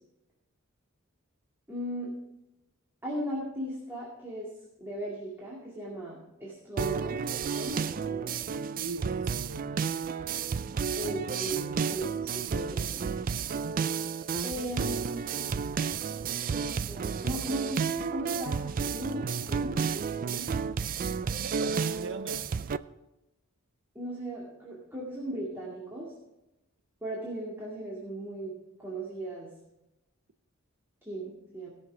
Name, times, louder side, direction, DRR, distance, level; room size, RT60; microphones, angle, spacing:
voice 1, 1.7-2.1 3.0-4.5 4.8-8.3 11.0-13.0 14.4-15.5 16.2-18.6 18.9-19.9 20.2-20.5 23.9-26.1 27.0-28.5 28.8-29.5 31.0-31.7, right 1 dB, 10° right, 2.2 m, -37 dB
sound 1, 6.8-22.8, right 6 dB, 40° right, 0.3 m, -31 dB
voice 2, 8.8-9.7 21.4-22.6, right 4 dB, 60° right, 0.8 m, -39 dB
17.5 x 6.5 x 4.9 m
head